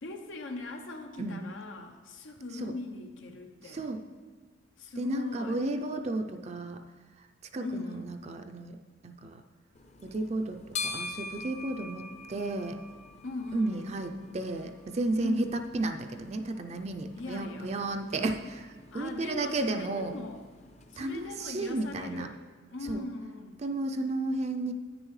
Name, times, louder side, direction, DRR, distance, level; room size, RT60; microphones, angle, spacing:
voice 1, 0.0-3.9 4.8-5.6 7.6-8.1 13.2-13.9 15.2-15.5 17.2-17.8 18.9-20.4 20.9-22.4 22.7-23.6, left 3 dB, 80° left, 4 dB, 0.8 m, -40 dB
voice 2, 3.6-4.0 5.0-6.8 7.5-8.8 9.0-9.4 10.0-12.8 13.5-20.1 21.0-22.3 22.8-23.0 23.6-24.7, right 2 dB, 35° right, 6 dB, 0.4 m, -33 dB
sound 1, 9.7-22.3, left 3 dB, 35° left, 0.6 m, -45 dB
10.0 x 9.3 x 3.2 m, 1.4 s
head